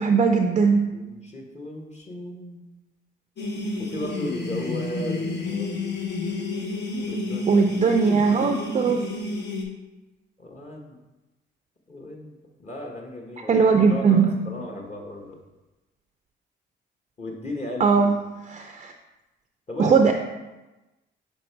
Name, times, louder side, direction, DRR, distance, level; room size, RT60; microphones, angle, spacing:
voice 1, 0.0-0.9 7.5-9.0 13.5-14.4 17.8-18.1 18.5-18.9 19.8-20.1, right 5 dB, 35° right, 4 dB, 0.5 m, -19 dB
voice 2, 0.9-2.6 3.8-5.8 7.1-7.9 8.2-8.5 10.4-11.0 11.9-15.4 17.2-18.1 19.7-20.1, left 1 dB, 35° left, 0 dB, 1.1 m, -36 dB
sound 1, 3.4-9.6, left 3 dB, 60° left, 1.1 m, -30 dB
6.2 x 3.3 x 4.6 m, 1.1 s
cardioid pair, 90°, 20 cm